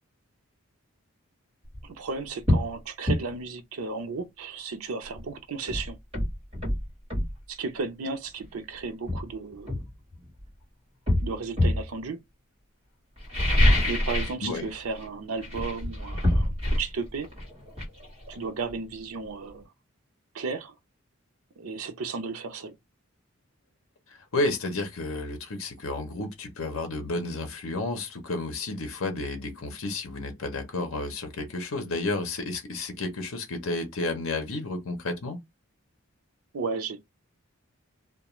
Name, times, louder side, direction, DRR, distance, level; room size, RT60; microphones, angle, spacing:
sound 1, 1.6-1.8 2.4-2.7 3.1-3.2 5.1-5.2 5.7-7.3 8.4-8.5 9.1-10.5 11.1-11.9 13.2-14.4 14.7-15.1 15.4-18.9 19.2-19.3, left 1 dB, 25° right, 1.3 m, -26 dB
voice 1, 1.8-6.0 7.5-9.8 11.2-12.2 13.8-17.3 18.3-19.6 20.3-20.7 21.6-22.7 36.5-37.0, right 4 dB, 80° right, 0.5 m, -34 dB
voice 2, 24.3-35.4, left 2 dB, 70° left, 0.6 m, -31 dB
2.3 x 2.2 x 3.0 m
head